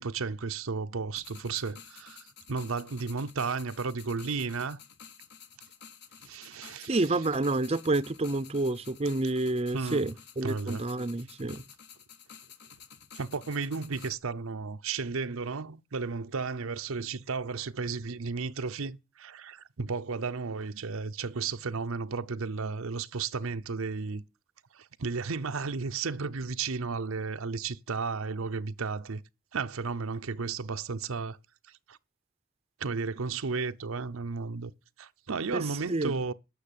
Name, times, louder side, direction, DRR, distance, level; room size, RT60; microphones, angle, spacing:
voice 1, 0.0-4.8 6.2-7.0 9.7-10.0 10.4-10.8 13.1-24.2 24.7-29.2 29.5-31.4 31.9-32.0 32.8-34.7 35.0-36.3, right 4 dB, 85° right, 0.7 m, -33 dB
sound 1, 1.2-14.1, left 7 dB, 55° left, 1.4 m, -51 dB
voice 2, 6.9-11.6 35.5-36.1, right 2 dB, 30° right, 0.6 m, -29 dB
12.0 x 6.6 x 8.6 m
head